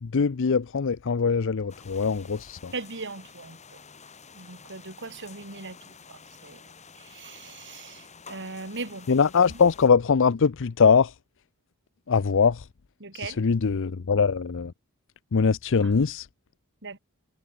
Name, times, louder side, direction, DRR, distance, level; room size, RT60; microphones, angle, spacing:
voice 1, 0.0-2.7 9.1-11.1 12.1-12.6 13.4-14.7 15.3-16.3, left 5 dB, 60° left, 0.6 m, -22 dB
sound 1, 1.7-9.9, left 5 dB, 30° left, 3.1 m, -50 dB
voice 2, 2.7-3.8 4.3-9.1 9.5-9.6 13.0-13.4 15.8-15.9 16.8-17.0, right 3 dB, 55° right, 2.9 m, -39 dB
head